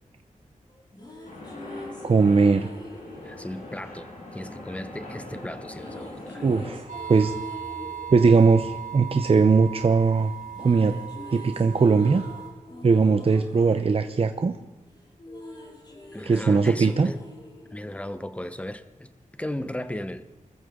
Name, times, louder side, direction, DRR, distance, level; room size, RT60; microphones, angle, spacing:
sound 1, 0.7-4.8 5.7-9.9 10.2-18.7, left 1 dB, 35° left, 6.1 m, -45 dB
sound 2, 1.2-6.8, left 2 dB, 80° left, 5.7 m, -41 dB
voice 1, 2.0-2.7 6.4-7.3 8.1-10.3 10.6-10.9 11.3-12.2 12.8-14.6 16.3-17.1, right 4 dB, 45° right, 8 dB, 0.8 m, -20 dB
voice 2, 3.2-6.4 16.1-17.2 17.7-19.1 19.4-20.2, left 1 dB, 10° left, 11 dB, 1.0 m, -36 dB
sound 3, 6.9-12.5, right 9 dB, 75° right, 5.3 m, -38 dB
26.0 x 14.5 x 3.8 m, 1.0 s
wide cardioid pair, 105°, 14 cm